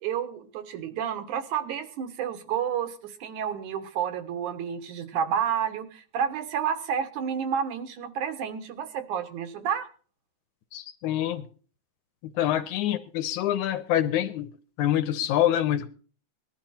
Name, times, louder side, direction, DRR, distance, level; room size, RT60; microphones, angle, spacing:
voice 1, 0.0-9.9, right 8 dB, 80° right, 8 dB, 2.9 m, -30 dB
voice 2, 10.7-11.5 12.2-14.5 14.8-15.9, left 12 dB, 85° left, 12 dB, 2.3 m, -26 dB
19.0 x 11.5 x 4.4 m, 0.40 s
omnidirectional pair, 3.4 m